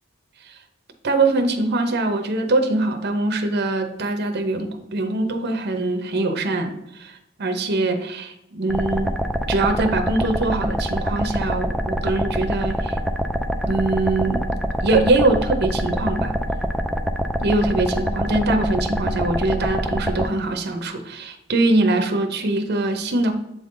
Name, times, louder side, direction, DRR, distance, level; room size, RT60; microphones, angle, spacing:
voice 1, 1.0-9.2 9.5-13.0 13.6-14.4 14.8-16.3 17.4-23.3, right 2 dB, 50° right, 5 dB, 0.7 m, -22 dB
sound 1, 8.7-20.3, equal, ahead, 0.4 m, -25 dB
7.8 x 3.7 x 3.8 m, 0.85 s
head